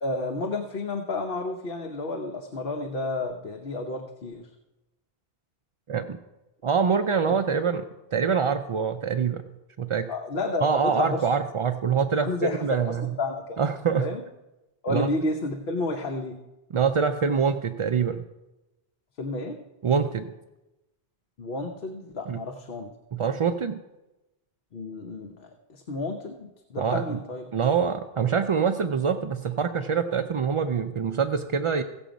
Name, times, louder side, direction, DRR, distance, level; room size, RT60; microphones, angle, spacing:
voice 1, 0.0-4.5 7.1-7.2 10.1-11.3 12.2-13.6 14.0-14.2 14.8-16.4 19.2-19.6 21.4-22.9 24.7-27.4, left 2 dB, 60° left, 3 dB, 1.1 m, -31 dB
voice 2, 6.6-7.8 8.1-9.4 9.8-10.1 10.6-13.1 13.6-14.1 14.9-15.1 16.7-18.2 19.8-20.3 22.3-22.4 23.1-23.8 26.8-27.2 27.5-31.8, right 6 dB, 60° right, 8 dB, 0.3 m, -25 dB
16.0 x 7.0 x 5.1 m, 1.0 s
omnidirectional pair, 1.1 m